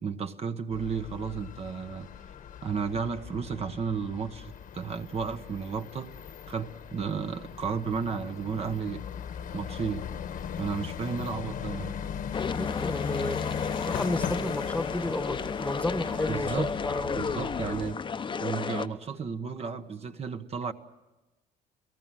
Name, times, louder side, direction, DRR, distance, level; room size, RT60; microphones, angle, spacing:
voice 1, 0.0-2.1 2.6-6.1 6.5-9.0 9.5-10.1 10.6-11.9 16.3-16.7 17.2-20.7, right 6 dB, 40° right, 7 dB, 1.1 m, -33 dB
sound 1, 0.7-17.9, left 8 dB, 55° left, 1.3 m, -38 dB
sound 2, 12.3-18.9, left 5 dB, 30° left, 0.9 m, -33 dB
voice 2, 12.5-13.4 13.8-16.5 16.8-17.4, left 1 dB, 10° left, 10 dB, 1.3 m, -32 dB
29.0 x 18.0 x 7.5 m, 1.1 s
cardioid pair, 110°, 17 cm